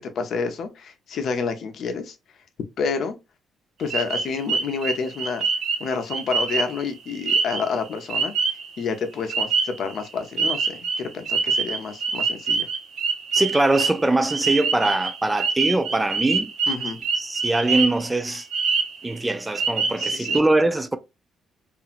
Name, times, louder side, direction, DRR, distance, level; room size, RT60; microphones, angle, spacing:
voice 1, 0.0-2.1 2.8-3.1 3.8-5.4 5.8-8.3 8.8-12.7 16.7-17.0 20.0-20.4, left 5 dB, 65° left, 0.6 m, -29 dB
sound 1, 3.9-8.8 9.3-10.1 10.4-18.1 18.4-19.2 19.5-20.4, right 5 dB, 75° right, 0.9 m, -25 dB
voice 2, 13.3-16.5 17.2-18.5 19.0-21.0, right 2 dB, 15° right, 0.3 m, -22 dB
2.8 x 2.5 x 2.5 m
cardioid pair, 90°, 0 cm